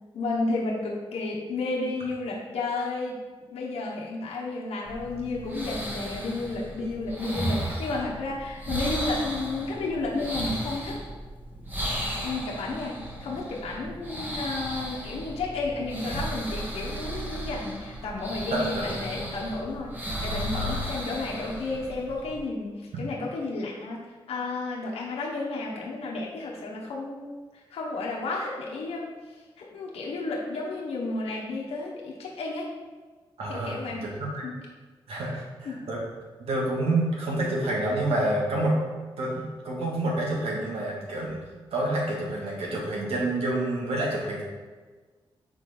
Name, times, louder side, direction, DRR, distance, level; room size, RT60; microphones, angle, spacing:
voice 1, 0.1-3.2 3.5-11.0 12.2-24.0 24.3-32.7 33.5-34.0 34.4-34.6 35.6-35.8, left 3 dB, 85° left, -3 dB, 1.0 m, -32 dB
sound 1, 4.8-22.4, equal, 20° right, 1.4 m, -35 dB
voice 2, 18.5-19.3 20.5-20.8 33.4-34.4 35.1-36.0 36.4-38.8 39.2-41.4 41.7-44.4, right 1 dB, 80° right, -3 dB, 1.7 m, -28 dB
5.8 x 3.9 x 4.2 m, 1.4 s
cardioid pair, 70°, 10 cm